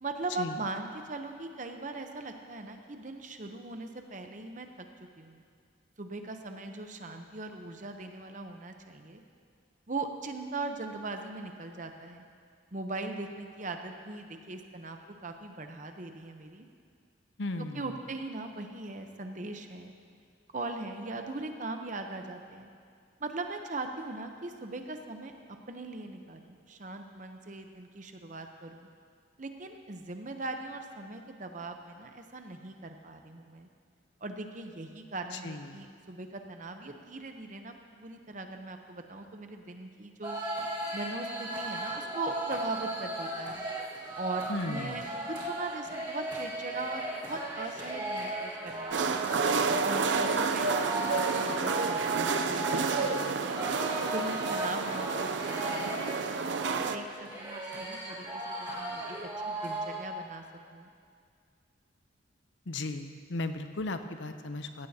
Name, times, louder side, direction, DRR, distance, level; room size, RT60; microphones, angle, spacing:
voice 1, 0.0-4.9 5.2-5.4 6.0-9.2 9.9-12.2 12.7-16.7 17.6-19.9 20.5-22.7 23.2-25.3 25.7-28.9 29.4-33.7 34.2-40.4 40.9-43.6 44.1-49.3 49.8-53.6 54.1-59.2 59.5-60.4 60.7-60.9, right 2 dB, 40° right, 5 dB, 0.8 m, -40 dB
voice 2, 17.4-17.9 35.3-35.9 44.5-45.0 62.7-64.9, left 2 dB, 70° left, 8 dB, 0.7 m, -36 dB
sound 1, 40.2-60.0, right 1 dB, 20° right, 1.7 m, -36 dB
sound 2, 48.9-57.0, right 4 dB, 65° right, 0.5 m, -30 dB
16.0 x 15.5 x 2.8 m, 2.2 s
head